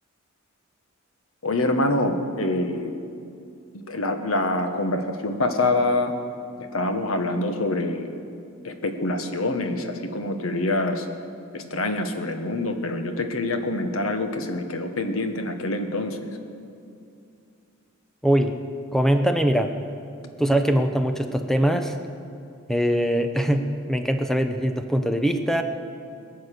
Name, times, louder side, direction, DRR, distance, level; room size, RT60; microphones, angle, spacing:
voice 1, 1.4-2.9 3.7-6.1 6.6-8.1 8.6-11.1 11.5-16.2, left 2 dB, 80° left, 6 dB, 1.4 m, -25 dB
voice 2, 18.2-18.5 18.9-19.7 20.4-21.9 22.7-23.6 23.9-25.6, equal, ahead, 6 dB, 0.7 m, -22 dB
22.0 x 8.2 x 6.8 m, 2.5 s
head